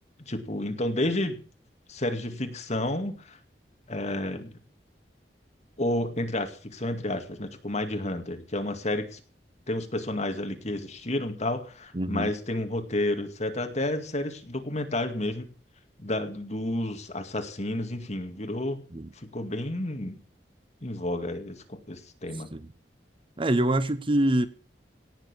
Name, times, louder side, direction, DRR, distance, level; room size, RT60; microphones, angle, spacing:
voice 1, 0.3-1.4 1.9-3.4 3.9-4.5 5.8-9.2 9.7-15.5 16.0-18.8 19.2-20.2 20.8-22.5, left 1 dB, 40° left, 6 dB, 2.3 m, -31 dB
voice 2, 11.9-12.3 18.9-19.1 22.5-22.7 23.4-24.5, right 1 dB, 30° right, 14 dB, 0.8 m, -25 dB
17.5 x 6.9 x 8.4 m, 0.40 s
head